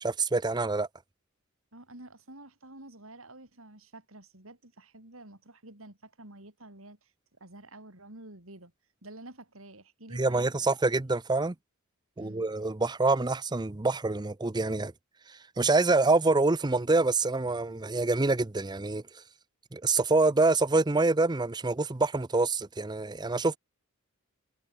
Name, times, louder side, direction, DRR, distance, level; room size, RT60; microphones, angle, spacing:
voice 1, 0.0-0.9 10.1-11.5 12.2-14.9 15.3-19.0 19.7-23.6, right 3 dB, 20° right, 0.6 m, -26 dB
voice 2, 1.7-8.7 9.0-10.8 12.2-12.5, right 1 dB, 70° right, 5.2 m, -50 dB
head